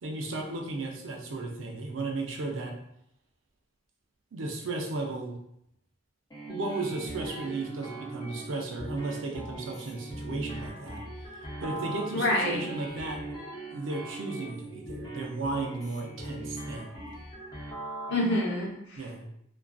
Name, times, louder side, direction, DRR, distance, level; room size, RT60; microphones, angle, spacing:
voice 1, 0.0-2.8 4.3-5.4 6.5-11.0 11.6-13.2 13.7-17.0 19.0-19.3, right 2 dB, 80° right, 2 dB, 0.5 m, -35 dB
sound 1, 6.3-18.5, right 2 dB, 20° left, 0.6 m, -40 dB
voice 2, 12.1-12.6 18.1-19.3, left 1 dB, 65° left, -3 dB, 0.7 m, -28 dB
2.4 x 2.3 x 2.3 m, 0.73 s
head